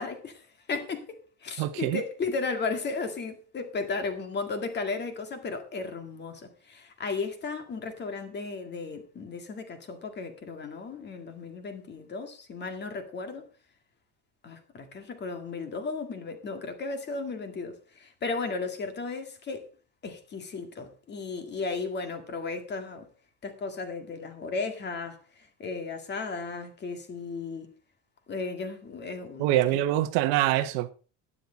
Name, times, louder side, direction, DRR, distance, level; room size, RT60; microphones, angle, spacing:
voice 1, 0.0-13.5 14.4-19.7 20.0-23.1 23.4-27.7 28.3-29.8, left 4 dB, 25° left, 1.9 m, -35 dB
voice 2, 1.6-2.0 29.4-30.9, right 14 dB, 75° right, 1.4 m, -25 dB
12.0 x 10.5 x 4.2 m
cardioid pair, 170°, 42 cm